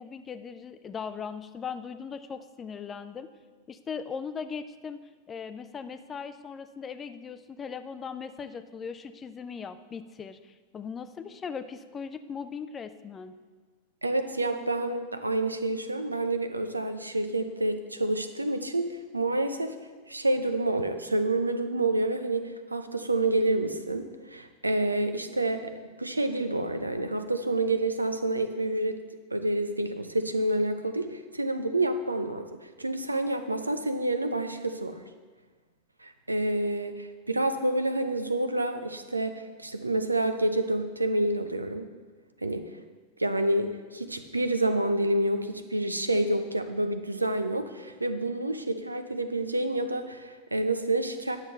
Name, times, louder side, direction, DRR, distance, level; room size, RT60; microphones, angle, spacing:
voice 1, 0.0-3.3 3.7-5.0 5.3-13.4, left 6 dB, 20° left, 11 dB, 0.5 m, -39 dB
voice 2, 14.0-19.7 20.1-25.7 26.0-29.0 29.3-32.5 32.8-35.0 36.0-41.8 42.4-42.7 43.2-51.4, right 1 dB, 85° right, 8 dB, 0.6 m, -28 dB
9.9 x 6.7 x 4.4 m, 1.4 s
figure-of-eight pair, 90°, 0 cm